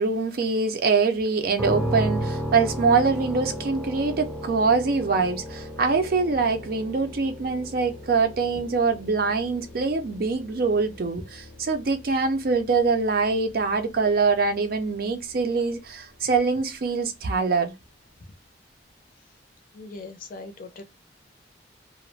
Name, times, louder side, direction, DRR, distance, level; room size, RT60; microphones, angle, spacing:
voice 1, 0.0-17.7, right 4 dB, 55° right, 0.4 m, -24 dB
sound 1, 1.6-15.3, equal, ahead, 0.7 m, -35 dB
voice 2, 19.7-20.8, left 3 dB, 50° left, 0.5 m, -40 dB
2.3 x 2.0 x 3.1 m
head